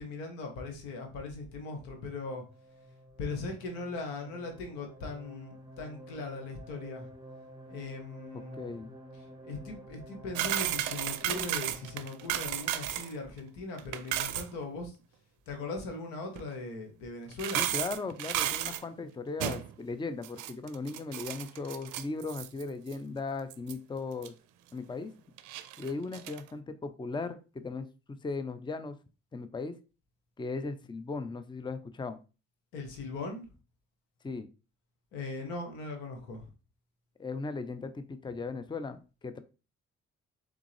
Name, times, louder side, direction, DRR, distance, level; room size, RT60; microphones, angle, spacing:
voice 1, 0.0-2.4 3.2-7.1 7.7-8.7 9.4-14.9 15.5-17.7 32.7-33.5 35.1-36.4, left 3 dB, 85° left, 4 dB, 1.0 m, -39 dB
sound 1, 1.7-12.5, right 1 dB, 15° right, 1.2 m, -51 dB
voice 2, 8.3-9.0 17.5-24.3 24.7-25.1 25.8-29.0 29.3-29.8 30.4-32.2 34.2-34.5 37.2-39.4, left 3 dB, 15° left, 10 dB, 0.5 m, -37 dB
sound 2, 10.3-13.1 13.4-13.5 13.8-14.5 16.4-16.5 17.3-18.8 19.4-19.7 20.2-22.6 22.9-23.0 23.5-23.7 24.2-24.3 25.4-26.4, right 12 dB, 75° right, 0.5 m, -33 dB
3.6 x 3.6 x 3.2 m, 0.32 s
hypercardioid pair, 50°, 31 cm